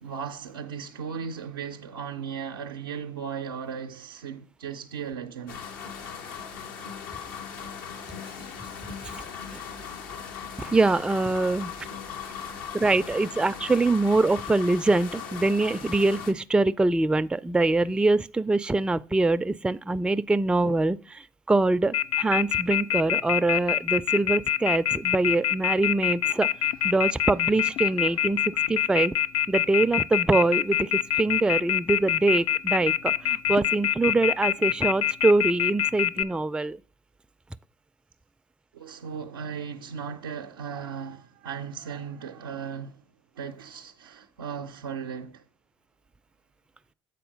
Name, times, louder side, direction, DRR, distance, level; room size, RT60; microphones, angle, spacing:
voice 1, 0.0-5.7 12.2-12.8 28.0-28.1 38.7-43.1 43.3-45.4, right 7 dB, 90° right, 0.5 m, -37 dB
sound 1, 5.5-16.3, left 7 dB, 75° left, 1.0 m, -38 dB
voice 2, 10.6-11.7 12.7-26.5 26.8-29.1 29.5-30.9 31.2-36.8, right 2 dB, 10° right, 0.3 m, -24 dB
Telephone, 21.9-36.2, left 11 dB, 60° left, 0.4 m, -24 dB
8.0 x 4.3 x 5.2 m
hypercardioid pair, 60°, 12 cm